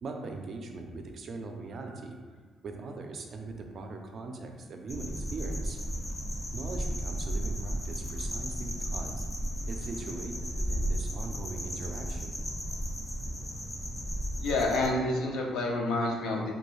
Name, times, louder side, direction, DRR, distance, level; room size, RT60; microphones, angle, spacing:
voice 1, 0.0-2.2 2.6-5.8 6.5-9.2 9.7-12.3, right 3 dB, 55° right, 3 dB, 0.3 m, -40 dB
sound 1, 4.9-14.9, equal, 20° left, 0.5 m, -34 dB
voice 2, 14.4-16.5, left 2 dB, 90° left, -1 dB, 0.4 m, -28 dB
2.3 x 2.2 x 3.0 m, 1.4 s
cardioid pair, 90°, 0 cm